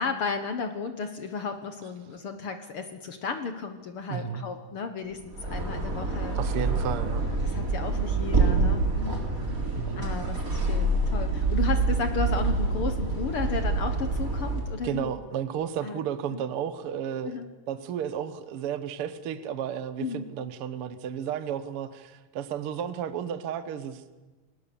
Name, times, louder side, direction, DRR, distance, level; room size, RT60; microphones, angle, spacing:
voice 1, 0.0-6.4 7.4-9.3 9.9-15.1 15.8-16.0 16.3-16.4 17.3-17.5 20.0-20.3, left 5 dB, 60° left, 7 dB, 1.4 m, -34 dB
voice 2, 4.1-4.4 6.3-7.2 9.7-10.0 14.8-24.1, right 9 dB, 75° right, 12 dB, 1.3 m, -33 dB
sound 1, 5.2-14.8, right 3 dB, 25° right, 3.5 m, -26 dB
29.0 x 19.0 x 7.0 m, 1.2 s
omnidirectional pair, 4.1 m